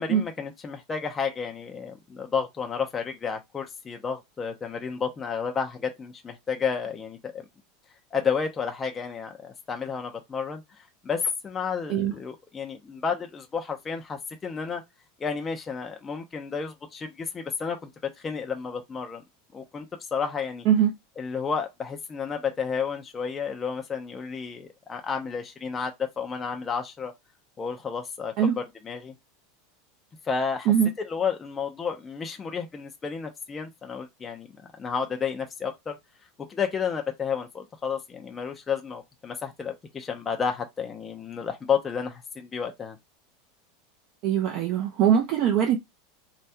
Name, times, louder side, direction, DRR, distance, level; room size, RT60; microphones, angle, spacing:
voice 1, 0.0-7.4 8.1-14.8 15.2-17.9 18.2-19.2 19.5-19.9 20.1-20.6 21.2-27.1 27.6-29.1 30.2-30.7 31.0-34.5 34.8-36.0 36.5-43.0, left 6 dB, 15° left, 0.5 m, -31 dB
voice 2, 20.7-21.0 28.4-28.6 30.7-30.9 44.2-45.8, right 9 dB, 45° right, 0.7 m, -22 dB
3.3 x 2.3 x 2.8 m
supercardioid pair, 155°, 0 cm